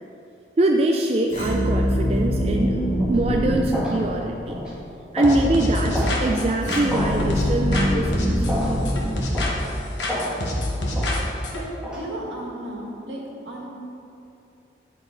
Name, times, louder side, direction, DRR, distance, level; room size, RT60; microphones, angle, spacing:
voice 1, 0.6-4.5 5.1-8.8, right 2 dB, 35° right, 1 dB, 0.4 m, -23 dB
sound 1, 1.3-4.6 6.6-9.9, equal, 45° left, 1.8 m, -24 dB
sound 2, 3.0-3.2 3.7-4.0 4.5-4.7 5.2-5.4 5.9-6.2 6.9-7.1 7.7-7.9 8.5-8.7 9.3-9.6 10.1-10.3 10.9-11.1 11.8-12.0, equal, 5° right, 1.4 m, -29 dB
sound 3, 5.2-7.9 8.1-9.7 10.0-11.6, left 1 dB, 85° left, 1.2 m, -26 dB
voice 2, 11.5-13.2 13.4-13.7, right 1 dB, 80° right, -4 dB, 1.8 m, -34 dB
8.4 x 7.2 x 3.8 m, 2.7 s
head